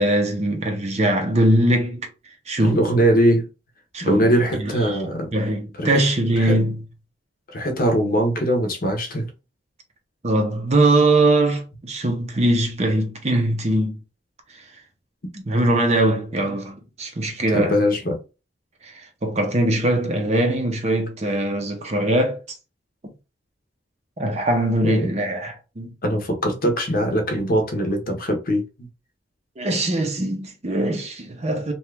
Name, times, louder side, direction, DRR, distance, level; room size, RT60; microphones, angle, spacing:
voice 1, 0.0-2.1 2.5-2.8 3.9-5.0 5.3-6.8 10.2-14.0 14.5-14.6 15.3-17.8 18.8-22.4 24.2-25.9 29.6-31.7, right 1 dB, 35° right, 0.6 m, -21 dB
voice 2, 2.6-3.5 4.0-5.3 5.8-6.0 6.4-6.6 7.5-9.3 16.4-16.5 17.5-18.2 24.8-25.1 26.0-28.9, equal, 45° left, 0.7 m, -21 dB
2.8 x 2.3 x 3.3 m
head